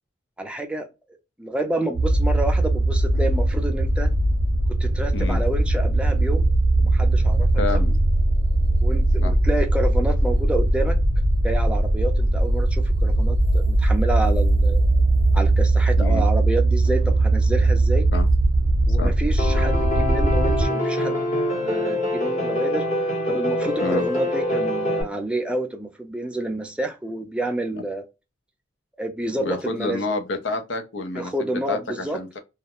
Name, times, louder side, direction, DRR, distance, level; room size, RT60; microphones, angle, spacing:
voice 1, 0.4-0.9 1.4-4.1 4.8-6.5 6.8-7.8 8.8-11.0 11.4-14.8 15.3-18.1 18.9-28.0 29.0-30.0 31.1-32.2, right 1 dB, 5° right, 0.4 m, -29 dB
sound 1, 1.9-20.7, right 2 dB, 60° right, 0.5 m, -20 dB
voice 2, 7.6-7.9 9.2-9.3 16.0-16.3 18.1-18.3 19.0-19.1 23.8-24.1 29.4-32.4, left 3 dB, 65° left, 0.5 m, -29 dB
Piano, 19.4-25.0, left 1 dB, 35° left, 0.9 m, -24 dB
2.3 x 2.1 x 2.8 m
head